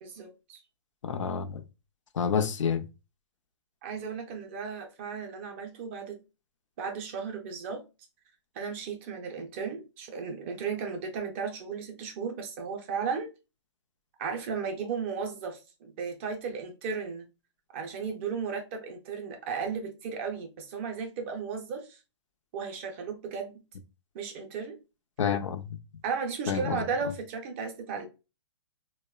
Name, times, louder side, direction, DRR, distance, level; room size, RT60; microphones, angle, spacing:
voice 1, 0.0-0.6 3.8-6.2 6.8-7.8 8.5-13.3 14.2-17.2 17.7-22.0 22.5-23.6 24.1-24.8 26.0-28.0, right 5 dB, 25° right, 0.4 m, -35 dB
voice 2, 1.0-1.6 2.1-2.9 25.2-25.8 26.5-26.8, left 7 dB, 85° left, 0.4 m, -28 dB
2.8 x 2.0 x 2.2 m
hypercardioid pair, 160°, 16 cm